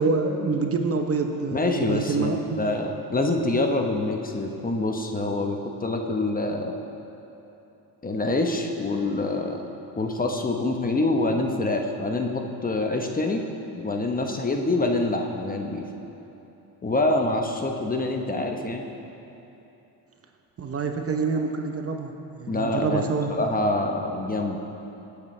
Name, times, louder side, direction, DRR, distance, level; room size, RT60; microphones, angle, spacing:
voice 1, 0.0-2.6 20.6-22.1 22.4-23.3, right 4 dB, 35° right, 4 dB, 0.9 m, -26 dB
voice 2, 1.5-6.8 8.0-9.6 10.0-13.4 13.7-15.8 16.8-18.8 22.5-24.6, left 2 dB, 20° left, 3 dB, 1.0 m, -26 dB
18.0 x 8.2 x 3.3 m, 3.0 s
supercardioid pair, 90°, 42 cm